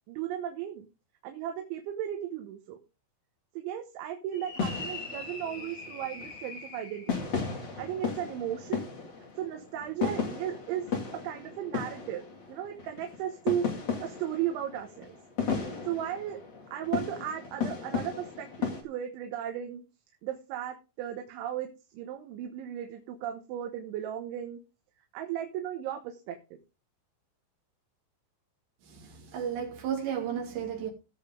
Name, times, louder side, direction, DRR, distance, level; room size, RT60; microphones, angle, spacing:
voice 1, 0.1-0.9 1.2-2.8 3.5-7.3 7.8-8.8 9.4-10.9 11.2-13.7 14.0-15.2 15.8-16.4 16.7-19.8 20.2-21.7 21.9-24.6 25.1-26.4, right 10 dB, 80° right, 3.5 m, -35 dB
sound 1, 4.3-18.8, left 5 dB, 40° left, 1.8 m, -35 dB
voice 2, 28.9-30.9, right 8 dB, 65° right, 5.2 m, -33 dB
16.5 x 6.7 x 3.7 m
omnidirectional pair, 5.4 m